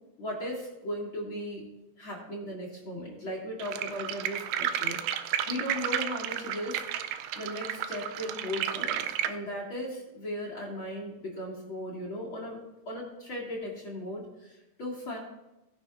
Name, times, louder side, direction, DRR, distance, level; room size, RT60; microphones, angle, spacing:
voice 1, 0.2-1.7 2.0-5.0 5.5-6.8 7.4-12.6 12.9-15.2, left 1 dB, 40° left, -3 dB, 2.1 m, -37 dB
sound 1, 3.6-9.3, right 10 dB, 90° right, 2.2 m, -32 dB
17.5 x 11.0 x 2.5 m, 0.97 s
omnidirectional pair, 5.2 m